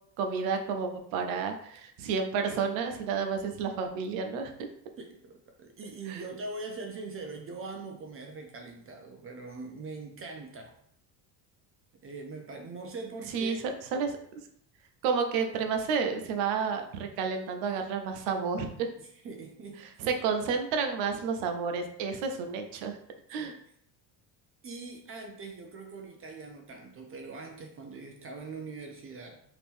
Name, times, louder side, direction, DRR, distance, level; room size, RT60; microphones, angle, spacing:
voice 1, 0.2-4.5 6.1-6.2 13.3-13.5 13.9-14.2 15.0-18.9 20.0-23.0 23.3-23.6, right 5 dB, 85° right, 5 dB, 0.7 m, -30 dB
voice 2, 5.0-10.8 12.0-13.7 19.0-20.1 23.4-23.6 24.6-29.4, right 3 dB, 30° right, 3 dB, 0.4 m, -42 dB
2.9 x 2.5 x 3.5 m, 0.67 s
cardioid pair, 115°, 46 cm